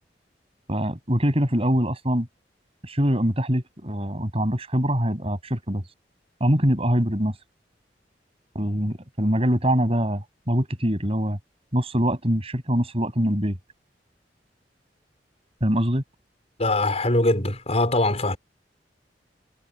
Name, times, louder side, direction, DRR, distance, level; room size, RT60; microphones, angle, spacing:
voice 1, 0.7-2.3 2.8-5.8 6.4-7.3 8.5-11.4 11.7-13.6 15.6-16.0, equal, 35° right, 7.9 m, -23 dB
voice 2, 16.6-18.4, left 2 dB, 35° left, 5.7 m, -22 dB
head